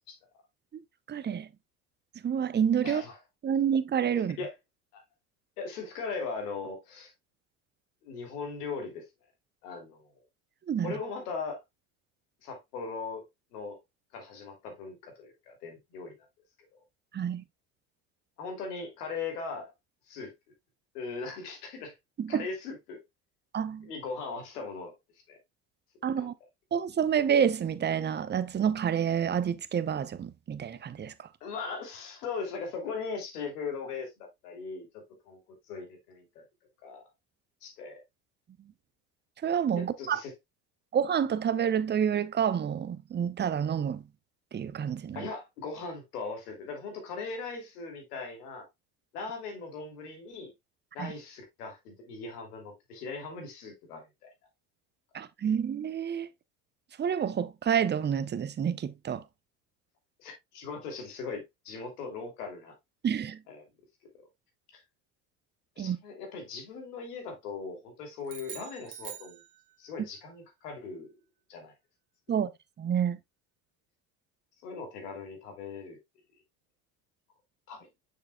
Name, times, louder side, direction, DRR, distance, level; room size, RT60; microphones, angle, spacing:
voice 1, 1.1-1.5 2.2-3.0 3.4-4.4 10.7-11.0 17.1-17.4 22.2-22.5 23.5-23.9 26.0-26.3 26.7-31.3 39.4-40.2 40.9-44.0 44.5-45.2 51.0-51.1 55.1-56.3 57.0-59.2 63.0-63.4 65.8-66.0 72.3-72.5 72.8-73.2, right 8 dB, 25° right, 0.7 m, -28 dB
voice 2, 2.8-3.2 4.2-4.5 4.9-5.0 5.6-7.1 8.0-9.1 9.6-10.2 10.8-11.6 12.4-13.2 13.5-13.8 14.1-16.1 18.4-19.7 20.1-20.3 20.9-21.9 22.3-23.0 23.8-24.9 25.3-25.4 26.0-26.3 31.4-35.4 35.7-36.4 36.8-37.1 37.6-38.0 39.7-40.3 45.1-48.7 49.1-50.5 50.9-54.3 60.2-62.7 63.5-63.7 64.7-64.8 65.8-69.4 69.8-71.1 71.5-71.7 74.6-76.0 77.7-77.9, left 4 dB, 80° left, 2.8 m, -39 dB
sound 1, 68.2-70.0, right 11 dB, 85° right, 1.7 m, -45 dB
6.7 x 6.4 x 2.2 m
hypercardioid pair, 80°, 46 cm